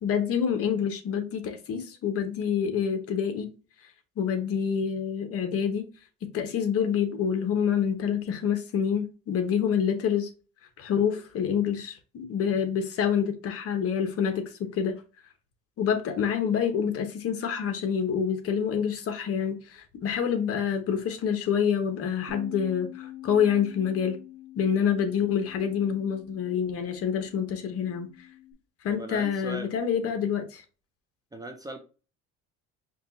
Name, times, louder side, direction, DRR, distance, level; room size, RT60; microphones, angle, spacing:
voice 1, 0.0-3.5 4.2-5.9 6.3-10.3 10.8-15.0 15.8-24.2 24.6-28.1 28.8-30.6, left 7 dB, 50° left, 1.1 m, -27 dB
Bass guitar, 22.3-28.5, left 13 dB, 55° right, 1.3 m, -46 dB
voice 2, 28.9-29.7 31.3-31.8, right 1 dB, 10° right, 0.6 m, -39 dB
5.2 x 2.4 x 4.1 m
cardioid pair, 130°, 30 cm